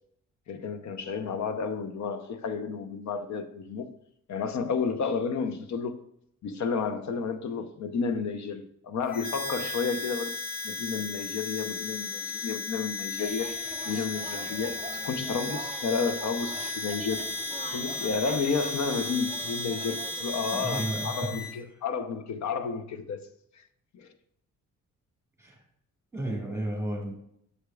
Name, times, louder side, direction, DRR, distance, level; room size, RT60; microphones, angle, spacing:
voice 1, 0.5-3.9 4.3-6.0 6.4-10.3 10.6-17.4 17.7-23.3 23.9-24.1, left 5 dB, 60° left, 0.8 m, -31 dB
Harmonica, 9.1-21.5, left 3 dB, 30° left, 1.6 m, -35 dB
sound 1, 13.2-20.8, right 5 dB, 25° right, 0.5 m, -43 dB
voice 2, 20.5-21.4 25.4-25.6 26.1-27.1, right 1 dB, 10° right, 1.7 m, -33 dB
7.3 x 6.4 x 2.4 m
cardioid pair, 105°, 31 cm